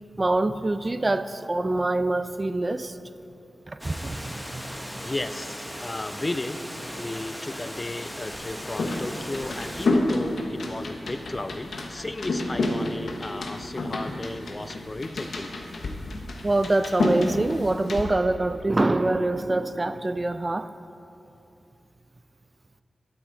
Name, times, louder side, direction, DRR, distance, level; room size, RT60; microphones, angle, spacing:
voice 1, 0.2-3.0 3.7-5.1 16.4-20.7, right 2 dB, 30° right, 0.4 m, -25 dB
Water, 3.8-9.9, equal, 5° left, 1.2 m, -38 dB
voice 2, 5.0-6.6 6.9-15.5, left 2 dB, 30° left, 0.4 m, -34 dB
sound 1, 8.3-18.0, left 2 dB, 85° left, 0.9 m, -30 dB
12.0 x 9.4 x 3.9 m
cardioid pair, 60°, 0 cm